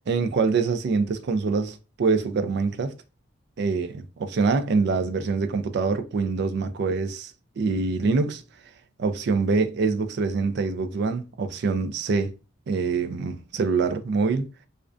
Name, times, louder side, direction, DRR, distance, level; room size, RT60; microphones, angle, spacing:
voice 1, 0.1-2.9 3.6-8.4 9.0-12.3 12.7-14.5, right 4 dB, 60° right, 0.3 m, -25 dB
2.4 x 2.1 x 2.4 m
head